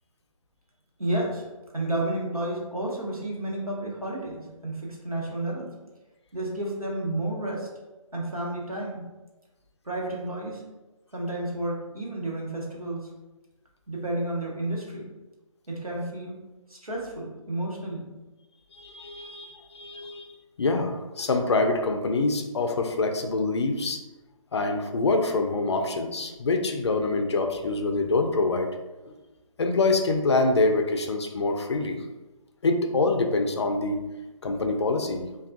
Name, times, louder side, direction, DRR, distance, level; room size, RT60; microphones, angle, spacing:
voice 1, 1.0-1.5 1.7-5.7 6.3-7.7 8.1-9.0 9.8-10.6 11.1-13.1 13.9-15.1 15.7-16.4 16.7-18.1, right 1 dB, 90° right, -3 dB, 0.9 m, -31 dB
voice 2, 18.7-20.3 20.6-24.0 24.5-28.7 29.1-29.2 29.6-32.0 32.6-34.0 34.4-35.3, left 3 dB, 50° left, 5 dB, 0.4 m, -25 dB
3.2 x 2.3 x 2.5 m, 1.1 s
figure-of-eight pair, 145°, 18 cm